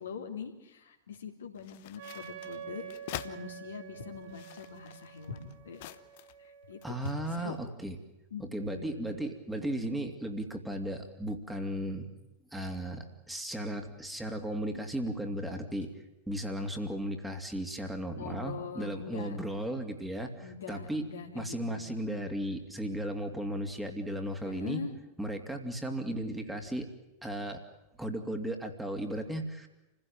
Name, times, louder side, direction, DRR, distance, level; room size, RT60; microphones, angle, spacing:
voice 1, 0.0-5.8 6.4-7.5 8.3-9.2 18.2-19.4 20.4-21.9 24.4-24.9, left 6 dB, 70° left, 3 dB, 3.1 m, -43 dB
sound 1, 1.6-3.4 4.1-6.5 6.8-7.5, left 14 dB, 50° left, 1.0 m, -46 dB
Wind instrument woodwind instrument, 2.0-7.6, right 8 dB, 55° right, 5.2 m, -48 dB
voice 2, 6.8-8.0 8.4-12.1 12.5-15.9 16.3-21.1 21.3-24.8 25.2-26.9 27.2-27.6 28.0-29.7, right 1 dB, 5° right, 4 dB, 2.8 m, -35 dB
28.5 x 16.0 x 8.9 m, 0.96 s
figure-of-eight pair, 90°, 0 cm